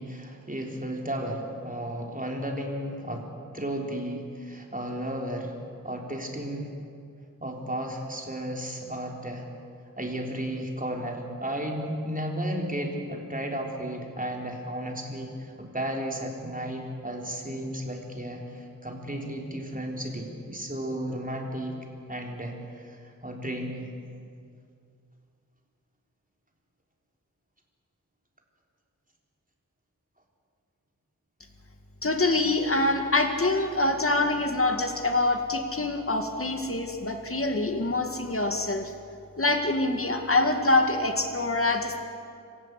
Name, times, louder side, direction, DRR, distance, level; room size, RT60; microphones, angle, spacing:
voice 1, 0.0-3.3 3.5-5.5 5.8-6.7 7.4-9.5 10.0-21.8 22.1-23.9, right 1 dB, 25° right, 0 dB, 3.8 m, -33 dB
voice 2, 32.0-38.9 39.4-42.0, left 2 dB, 40° left, 5 dB, 2.1 m, -25 dB
27.0 x 15.5 x 8.2 m, 2.4 s
wide cardioid pair, 60°, 33 cm